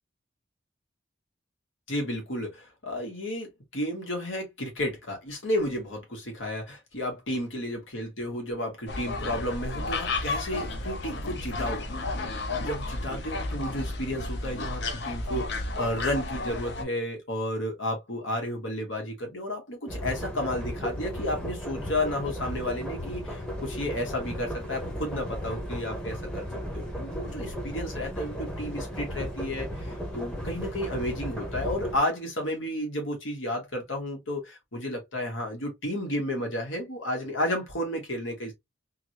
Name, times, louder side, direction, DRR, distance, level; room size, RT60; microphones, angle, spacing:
voice 1, 1.9-3.5 3.7-11.8 12.6-26.5 26.7-38.5, left 1 dB, 80° left, 1.8 m, -32 dB
sound 1, 8.9-16.8, left 2 dB, 60° left, 0.8 m, -32 dB
sound 2, 19.9-32.0, equal, 5° left, 0.9 m, -35 dB
3.8 x 2.6 x 2.9 m
head